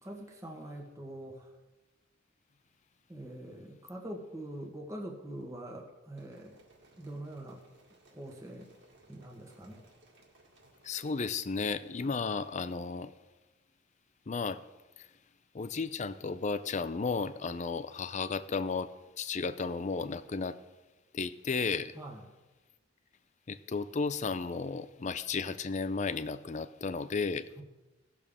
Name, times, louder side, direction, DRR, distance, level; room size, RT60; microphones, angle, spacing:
voice 1, 0.0-1.5 3.1-6.6 7.0-7.6 8.1-8.7 9.1-9.8 12.0-12.2 21.9-22.3 27.6-27.7, right 1 dB, 15° right, -1 dB, 1.3 m, -44 dB
sound 1, 6.1-11.1, right 2 dB, 65° right, 2.1 m, -62 dB
voice 2, 10.8-13.1 14.3-14.6 15.0-15.1 15.5-20.6 21.1-22.0 23.5-27.5, left 4 dB, 35° left, 13 dB, 0.5 m, -34 dB
18.0 x 6.9 x 3.6 m, 1.1 s
head